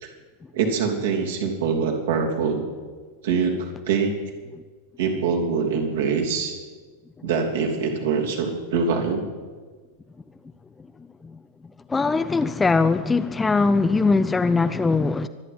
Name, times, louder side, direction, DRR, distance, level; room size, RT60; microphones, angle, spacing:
voice 1, 0.5-2.7 3.2-4.3 5.0-6.5 7.2-9.3, right 5 dB, 60° right, 1 dB, 3.1 m, -24 dB
voice 2, 11.9-15.3, left 4 dB, 10° left, 10 dB, 0.7 m, -21 dB
24.5 x 10.0 x 5.8 m, 1.4 s
figure-of-eight pair, 90°, 0 cm